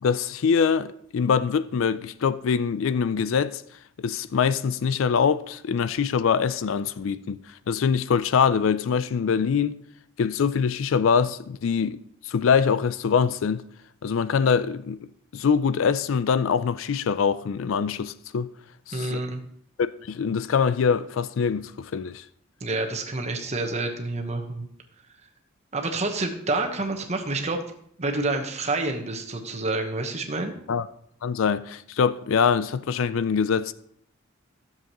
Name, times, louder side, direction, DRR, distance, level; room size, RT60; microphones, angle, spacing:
voice 1, 0.0-3.6 4.0-7.4 7.7-9.8 10.2-12.0 12.2-13.6 14.0-15.1 15.3-18.5 18.9-19.2 19.8-22.2 30.7-30.9 31.2-33.7, left 6 dB, 70° left, 0.4 m, -24 dB
voice 2, 18.9-19.4 22.6-24.7 25.7-27.6 28.0-30.5, right 2 dB, 35° right, 1.1 m, -28 dB
13.0 x 7.3 x 3.0 m
head